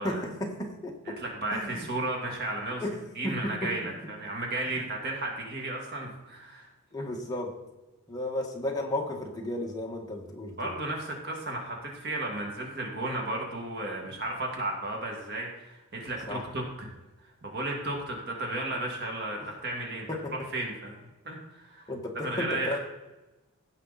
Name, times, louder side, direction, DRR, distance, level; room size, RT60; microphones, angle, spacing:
voice 1, 0.0-1.1 1.5-1.9 2.2-2.3 2.8-3.0 3.2-3.9 4.6-4.7 6.9-7.5 8.1-10.8 16.3-16.5 19.4-19.5 20.1-20.3 21.9-22.8, left 1 dB, 15° left, 0 dB, 1.6 m, -34 dB
voice 2, 1.2-2.8 3.2-6.7 10.6-16.6 17.4-20.1 20.5-21.9 22.2-22.7, right 2 dB, 50° right, 0 dB, 2.1 m, -34 dB
16.0 x 5.5 x 4.1 m, 1.1 s
head